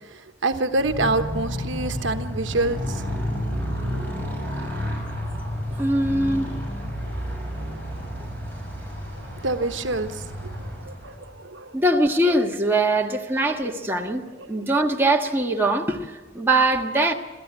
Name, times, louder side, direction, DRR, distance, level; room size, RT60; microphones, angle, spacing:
voice 1, 0.1-3.0 9.3-11.8 13.1-13.2 13.6-13.7 14.3-14.5, right 2 dB, 70° right, 7 dB, 1.2 m, -27 dB
Motorcycle, 0.7-11.4, equal, 10° left, 6.8 m, -31 dB
voice 2, 5.8-6.5 11.7-17.1, right 2 dB, 10° right, 0 dB, 1.5 m, -22 dB
28.0 x 13.5 x 8.2 m, 1.4 s
head